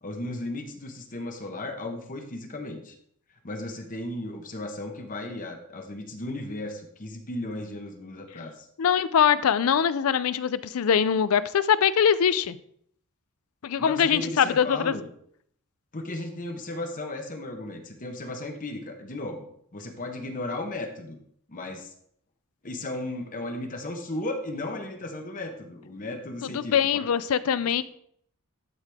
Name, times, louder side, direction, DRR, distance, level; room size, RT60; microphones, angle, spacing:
voice 1, 0.0-2.9 3.4-8.7 13.8-15.1 15.9-21.2 21.5-21.9 22.6-26.8 27.6-27.8, left 2 dB, 40° left, 4 dB, 1.0 m, -35 dB
voice 2, 8.8-12.6 13.6-15.0 26.5-27.8, left 8 dB, 70° left, 16 dB, 0.4 m, -23 dB
12.0 x 4.8 x 3.5 m, 0.68 s
head